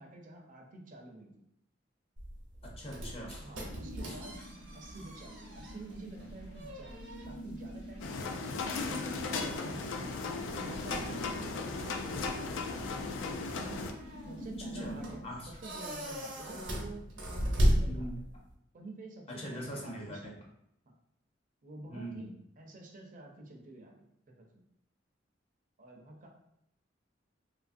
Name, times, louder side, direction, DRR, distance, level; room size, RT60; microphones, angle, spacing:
voice 1, 0.0-1.5 3.4-4.4 4.7-7.0 7.2-8.5 8.8-9.8 10.2-13.1 13.5-14.0 14.2-17.1 17.4-18.1 18.7-20.5 20.9-21.0 21.6-24.6 25.8-26.3, right 2 dB, 45° right, 1 dB, 0.4 m, -49 dB
sound 1, 2.2-18.5, equal, 85° right, 0.8 m, -37 dB
voice 2, 2.8-3.5 4.1-4.2 14.8-15.0 15.2-15.5 17.9-18.1 19.3-20.3 21.9-22.2, equal, 30° left, -2 dB, 0.6 m, -42 dB
sound 2, 3.7-15.1, equal, 60° left, 0.9 m, -47 dB
sound 3, 8.0-13.9, left 4 dB, 85° left, 0.3 m, -36 dB
2.7 x 2.4 x 2.5 m, 0.77 s
head